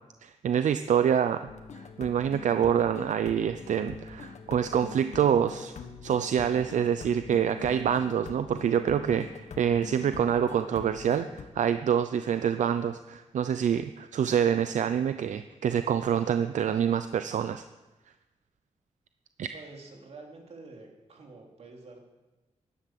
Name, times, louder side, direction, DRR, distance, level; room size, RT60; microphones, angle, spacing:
voice 1, 0.2-1.5 1.7-5.7 6.0-17.6 19.4-19.5, right 8 dB, 85° right, 10 dB, 0.6 m, -26 dB
sound 1, 1.5-11.5, left 5 dB, 70° left, 1.6 m, -44 dB
voice 2, 19.5-22.1, right 3 dB, 60° right, 1 dB, 3.2 m, -48 dB
16.0 x 11.5 x 7.6 m, 1.1 s
wide cardioid pair, 180°, 12 cm